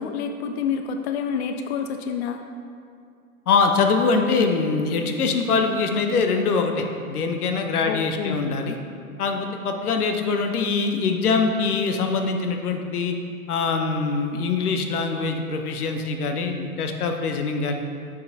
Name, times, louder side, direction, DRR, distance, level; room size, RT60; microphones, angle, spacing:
voice 1, 0.0-2.4 7.8-8.4, left 6 dB, 50° left, 6 dB, 0.4 m, -28 dB
voice 2, 3.5-8.8 9.2-13.1 13.5-17.7, left 4 dB, 75° left, 4 dB, 0.9 m, -23 dB
8.2 x 6.5 x 2.7 m, 2.4 s
hypercardioid pair, 125°, 45 cm